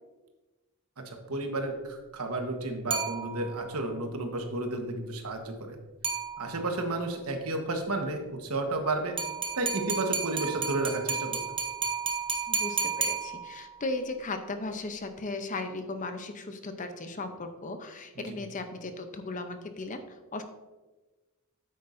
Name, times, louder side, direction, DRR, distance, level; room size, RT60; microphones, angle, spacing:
voice 1, 1.0-5.8 6.4-9.2 9.6-11.6 18.2-18.4, right 2 dB, 85° right, 4 dB, 1.3 m, -32 dB
sound 1, 2.9-3.7 6.0-6.8 9.2-13.8, right 5 dB, 25° right, 0.9 m, -32 dB
voice 2, 12.5-20.4, left 2 dB, 35° left, 7 dB, 0.7 m, -36 dB
9.2 x 8.4 x 2.6 m, 1.2 s
head